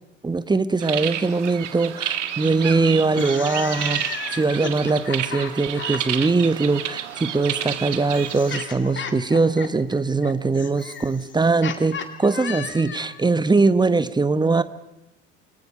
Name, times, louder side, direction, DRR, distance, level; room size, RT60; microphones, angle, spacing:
voice 1, 0.2-14.6, right 3 dB, 10° right, 14 dB, 1.2 m, -21 dB
sound 1, 0.8-8.6, right 10 dB, 70° right, 1.6 m, -30 dB
sound 2, 3.0-6.3 7.3-13.2, left 7 dB, 30° left, 2.4 m, -35 dB
28.0 x 20.0 x 5.5 m, 0.92 s
figure-of-eight pair, 65°, 37 cm